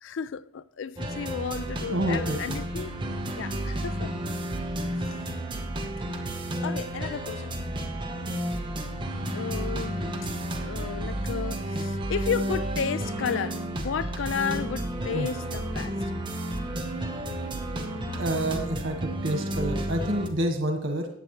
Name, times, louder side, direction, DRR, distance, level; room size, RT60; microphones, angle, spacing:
voice 1, 0.0-2.9 3.4-4.1 5.1-5.2 6.6-7.6 9.3-10.1 10.4-13.6 13.8-15.9, left 7 dB, 75° left, 0.4 m, -33 dB
sound 1, 1.0-20.3, right 1 dB, 25° right, 1.2 m, -32 dB
voice 2, 1.9-2.5 15.1-15.3 18.2-21.1, right 1 dB, 85° right, 1.6 m, -28 dB
14.5 x 9.3 x 3.3 m
head